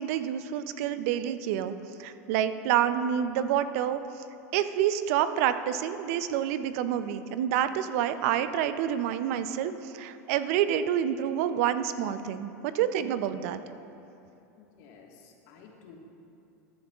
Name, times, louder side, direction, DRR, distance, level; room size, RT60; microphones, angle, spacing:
voice 1, 0.0-1.7 2.0-4.0 4.5-13.6, right 10 dB, 65° right, 11 dB, 0.5 m, -28 dB
voice 2, 14.6-16.0, left 6 dB, 60° left, 0 dB, 1.6 m, -53 dB
14.5 x 10.5 x 2.4 m, 2.8 s
hypercardioid pair, 105°, 8 cm